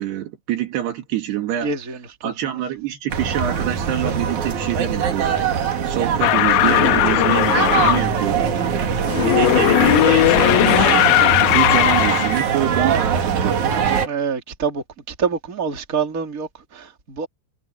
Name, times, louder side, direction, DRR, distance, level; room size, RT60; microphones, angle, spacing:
voice 1, 0.0-1.7 2.2-5.4 5.9-8.5 9.3-13.6, right 12 dB, 70° right, 3.9 m, -26 dB
voice 2, 1.6-2.6 14.0-17.3, right 6 dB, 20° right, 2.8 m, -27 dB
sound 1, 3.1-14.1, right 7 dB, 50° right, 3.0 m, -22 dB
sound 2, 6.2-8.1 9.1-12.4, left 17 dB, 90° left, 2.9 m, -17 dB
omnidirectional pair, 5.0 m